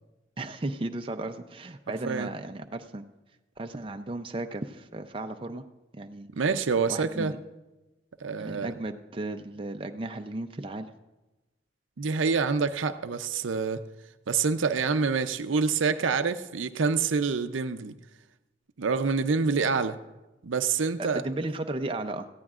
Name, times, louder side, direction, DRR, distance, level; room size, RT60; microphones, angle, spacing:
voice 1, 0.4-3.0 3.6-5.6 5.9-6.3 6.9-7.4 8.4-10.9 21.0-22.3, right 2 dB, 30° right, 6 dB, 0.5 m, -35 dB
voice 2, 6.3-7.3 8.2-8.7 12.0-13.8 14.3-17.9 18.8-20.0 20.4-21.2, right 5 dB, 85° right, 10 dB, 0.6 m, -26 dB
18.0 x 14.5 x 2.4 m, 1.1 s
head